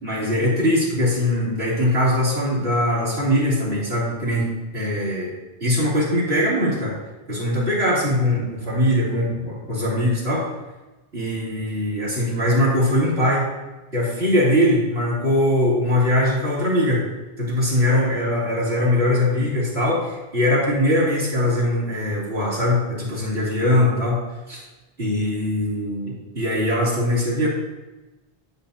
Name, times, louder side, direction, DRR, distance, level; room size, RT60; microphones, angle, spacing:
voice 1, 0.0-4.5 4.7-5.3 5.6-7.0 7.3-10.4 11.1-13.5 13.9-17.0 17.4-24.6 25.0-27.5, left 1 dB, 80° right, -8 dB, 3.3 m, -21 dB
12.0 x 6.5 x 2.8 m, 1.1 s
omnidirectional pair, 1.0 m